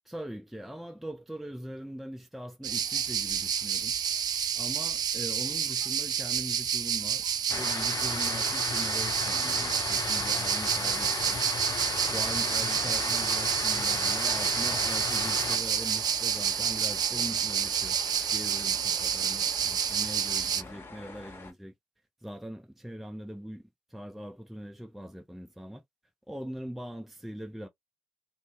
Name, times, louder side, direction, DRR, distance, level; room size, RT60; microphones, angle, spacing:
voice 1, 0.1-4.0 4.6-11.4 12.1-18.0 18.3-21.7 22.2-25.8 26.3-27.7, equal, ahead, 0.6 m, -41 dB
sound 1, 2.6-20.6, right 8 dB, 50° right, 0.4 m, -29 dB
sound 2, 7.5-15.6, left 6 dB, 45° left, 0.7 m, -35 dB
sound 3, 9.2-21.5, left 3 dB, 25° left, 1.5 m, -46 dB
2.8 x 2.1 x 3.4 m
hypercardioid pair, 50°, 9 cm